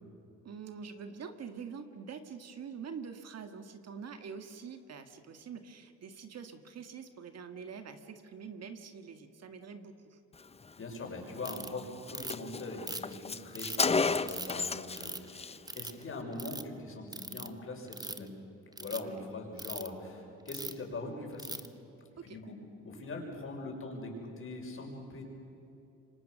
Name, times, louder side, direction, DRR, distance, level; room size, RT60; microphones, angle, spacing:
voice 1, 0.4-10.2 19.0-19.2 22.2-22.4, right 6 dB, 55° right, 7 dB, 2.0 m, -45 dB
voice 2, 10.8-18.4 18.8-21.6 22.2-22.5 22.8-25.2, left 2 dB, 45° left, 1 dB, 6.5 m, -42 dB
Car, 11.4-11.5 11.8-11.9 12.1-15.0 15.3-15.6, left 4 dB, 20° left, 0.7 m, -32 dB
Ratchet pawl, 11.4-11.7 12.1-12.5 12.9-13.8 14.3-14.5 15.0-15.3 15.7-16.0 16.3-16.6 17.1-17.5 17.9-18.3 18.7-19.0 19.6-19.9 20.5-20.8 21.4-21.7, right 2 dB, 15° right, 1.3 m, -40 dB
28.0 x 25.0 x 6.5 m, 2.8 s
cardioid pair, 90°, 30 cm